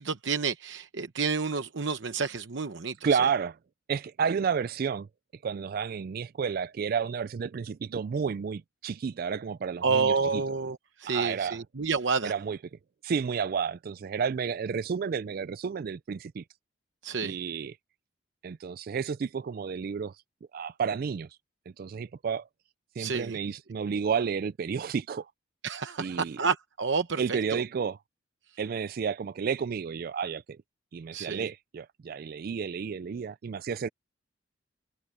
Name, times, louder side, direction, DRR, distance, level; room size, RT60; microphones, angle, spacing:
voice 1, 0.0-3.0 9.8-12.3 17.0-17.4 23.0-23.4 25.6-27.6 31.1-31.5, right 5 dB, 65° right, 0.9 m, -29 dB
voice 2, 3.0-3.6 3.9-5.1 5.4-10.4 11.0-11.6 12.2-12.6 13.0-16.4 17.2-17.7 18.4-20.2 20.5-21.4 21.8-22.5 23.0-25.3 26.0-26.4 27.2-28.0 28.6-30.6 30.9-33.9, right 6 dB, 50° right, 0.3 m, -31 dB
head